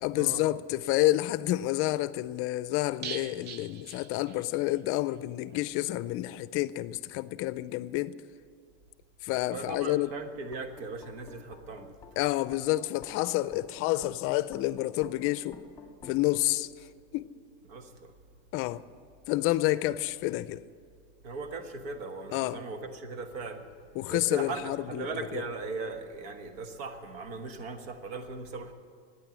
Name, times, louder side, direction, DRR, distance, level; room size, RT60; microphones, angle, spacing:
voice 1, 0.0-8.2 9.2-10.1 12.2-15.6 16.0-16.7 17.1-17.3 18.5-18.8 19.3-20.6 22.3-22.6 24.0-25.4, left 17 dB, 45° left, 0.5 m, -29 dB
sound 1, 3.0-4.8 5.1-5.2 5.5-5.6, right 7 dB, 35° right, 0.6 m, -42 dB
voice 2, 9.5-11.9 17.7-18.1 21.2-23.7 24.1-28.7, right 3 dB, 80° right, 1.5 m, -38 dB
sound 2, 10.4-16.4, left 4 dB, 10° left, 1.6 m, -51 dB
15.0 x 9.5 x 8.5 m
supercardioid pair, 145°, 30 cm